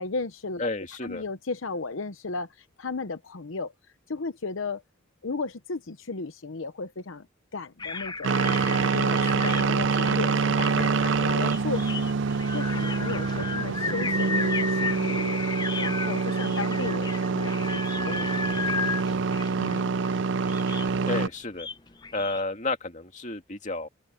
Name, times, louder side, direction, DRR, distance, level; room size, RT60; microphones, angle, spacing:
voice 1, 0.0-0.7 1.0-3.7 4.1-4.8 5.2-7.3 7.5-15.4 15.8-19.9, left 3 dB, 75° left, 0.9 m, -35 dB
voice 2, 0.6-1.2 21.1-21.7 22.1-23.9, left 2 dB, 40° left, 2.4 m, -31 dB
sound 1, 7.8-22.4, left 4 dB, 20° left, 0.7 m, -35 dB
sound 2, 8.2-21.3, right 4 dB, 60° right, 0.5 m, -26 dB
open air
head